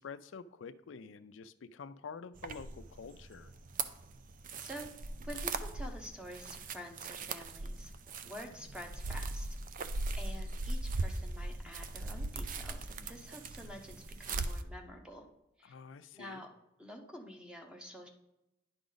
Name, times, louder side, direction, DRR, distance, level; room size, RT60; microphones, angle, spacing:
voice 1, 0.0-3.5 15.6-16.4, left 5 dB, 90° left, 11 dB, 0.4 m, -48 dB
footsteps in woods, 2.4-14.6, right 3 dB, 45° right, 0.5 m, -39 dB
voice 2, 4.6-4.9 5.2-7.9 8.3-9.5 10.2-15.2 15.6-15.7 16.1-16.5 16.8-18.1, equal, 5° right, 3 dB, 0.9 m, -48 dB
10.5 x 4.9 x 3.9 m, 0.93 s
head